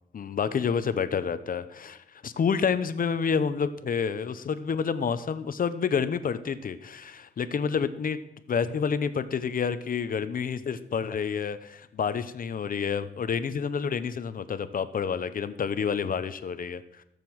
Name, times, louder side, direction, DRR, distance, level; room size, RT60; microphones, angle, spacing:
voice 1, 0.1-8.2 8.5-17.0, left 6 dB, 50° left, 12 dB, 1.0 m, -29 dB
16.5 x 6.9 x 7.8 m, 0.80 s
wide cardioid pair, 135°, 18 cm